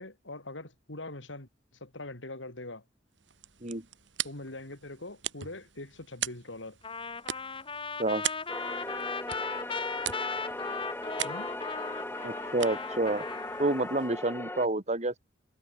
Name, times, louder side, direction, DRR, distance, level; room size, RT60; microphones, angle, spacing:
voice 1, 0.0-1.5 1.8-2.8 4.2-6.8 11.2-11.5, left 2 dB, 75° left, 3.7 m, -42 dB
sound 1, 3.1-14.3, right 11 dB, 70° right, 2.4 m, -41 dB
Trumpet, 6.8-13.9, left 4 dB, 30° left, 3.4 m, -37 dB
sound 2, 8.5-14.7, left 1 dB, 10° left, 4.0 m, -38 dB
voice 2, 12.2-13.2 13.6-15.2, right 2 dB, 40° right, 2.9 m, -29 dB
head